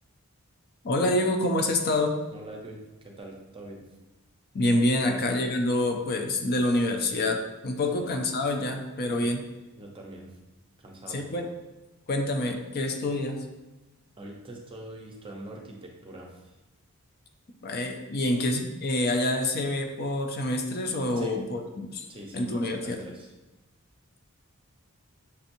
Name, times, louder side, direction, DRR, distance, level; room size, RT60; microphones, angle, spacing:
voice 1, 0.8-2.2 4.5-7.4 7.6-9.4 11.1-11.5 12.1-13.4 17.6-22.0 22.3-23.0, left 1 dB, 45° left, 3 dB, 0.5 m, -27 dB
voice 2, 2.3-3.8 5.0-5.2 7.9-8.1 9.1-9.3 9.8-10.3 10.8-11.2 14.2-16.5 21.1-21.4 22.1-23.3, right 1 dB, 25° right, 0 dB, 0.6 m, -43 dB
6.6 x 2.9 x 2.6 m, 1.1 s
head